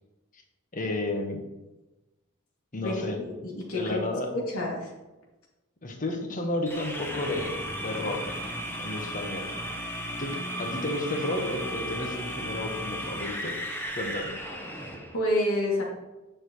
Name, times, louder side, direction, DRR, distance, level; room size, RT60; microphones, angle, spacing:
voice 1, 0.7-1.4 2.7-3.2 3.7-4.3 5.8-8.4 8.8-9.5 10.2-13.5 14.0-14.3, left 2 dB, 40° left, 2 dB, 1.3 m, -32 dB
voice 2, 2.7-4.9 15.1-15.8, left 1 dB, 85° left, -3 dB, 2.6 m, -29 dB
sound 1, 6.7-15.2, equal, 10° left, 1.1 m, -35 dB
9.5 x 6.7 x 3.2 m, 1.1 s
head